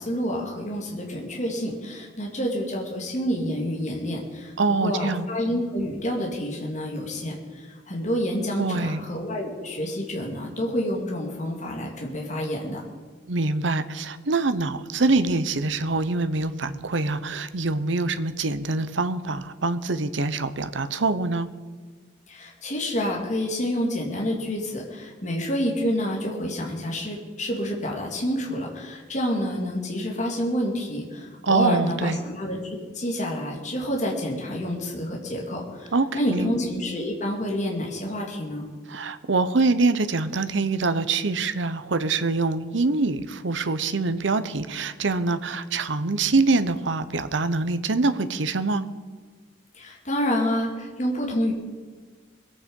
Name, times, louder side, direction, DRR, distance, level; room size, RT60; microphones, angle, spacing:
voice 1, 0.0-4.5 4.8-12.8 22.3-38.6 49.7-51.5, equal, 40° left, -1 dB, 2.2 m, -28 dB
voice 2, 4.6-5.3 8.6-9.0 13.3-21.5 31.4-32.2 35.9-36.5 38.9-48.9, right 3 dB, 75° right, 11 dB, 0.8 m, -24 dB
21.0 x 8.9 x 5.4 m, 1.5 s
head